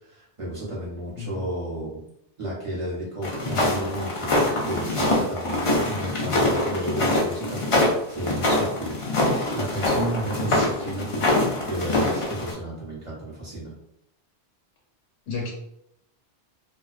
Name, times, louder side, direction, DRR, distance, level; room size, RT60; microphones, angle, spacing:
voice 1, 0.0-2.0 2.4-8.9 9.5-11.2 11.7-13.7, right 1 dB, 35° right, -6 dB, 0.8 m, -33 dB
sound 1, 3.2-12.5, left 2 dB, 45° left, 0.4 m, -24 dB
voice 2, 10.2-11.0 15.3-15.5, left 3 dB, 80° left, -1 dB, 1.1 m, -34 dB
2.4 x 2.1 x 2.4 m, 0.78 s
omnidirectional pair, 1.2 m